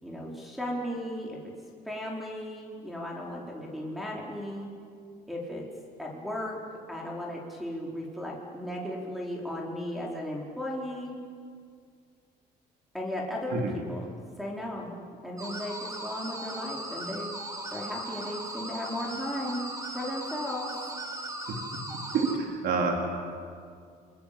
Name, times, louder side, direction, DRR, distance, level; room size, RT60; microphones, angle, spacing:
voice 1, 0.0-1.4 1.8-4.7 5.3-5.7 6.0-6.6 6.9-11.1 12.9-17.3 17.7-19.6 19.9-20.7, left 1 dB, ahead, -4 dB, 4.8 m, -36 dB
sound 1, 15.4-22.4, right 1 dB, 20° right, 4.4 m, -38 dB
voice 2, 22.1-23.0, right 4 dB, 70° right, 2 dB, 4.2 m, -27 dB
28.0 x 21.5 x 8.8 m, 2.2 s
cardioid pair, 110°, 17 cm